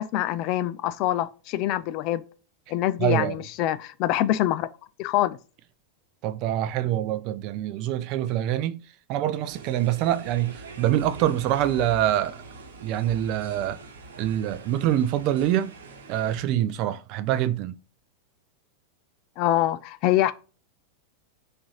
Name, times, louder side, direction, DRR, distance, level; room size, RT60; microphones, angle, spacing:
voice 1, 0.0-2.2 2.7-4.7 5.0-5.4 19.4-20.3, left 13 dB, 40° left, 0.3 m, -25 dB
voice 2, 3.0-3.4 6.2-8.8 9.1-12.4 12.8-13.8 14.2-15.7 16.1-17.8, right 12 dB, 40° right, 0.4 m, -25 dB
sound 1, 9.5-16.4, right 3 dB, 60° right, 0.9 m, -43 dB
6.0 x 2.6 x 3.1 m
figure-of-eight pair, 90°, 0 cm